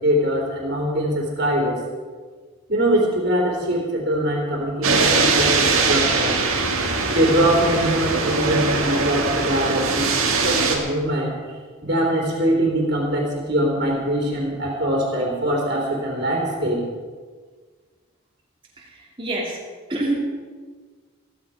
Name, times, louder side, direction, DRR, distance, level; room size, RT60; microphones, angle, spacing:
voice 1, 0.0-1.8 2.7-6.4 7.1-11.4 11.8-16.8, right 1 dB, 45° right, -2 dB, 3.5 m, -22 dB
sound 1, 4.8-10.8, right 3 dB, 70° right, 2.2 m, -21 dB
voice 2, 19.2-19.6 19.9-20.1, right 2 dB, 25° right, -4 dB, 2.7 m, -25 dB
15.5 x 14.5 x 4.9 m, 1.5 s
head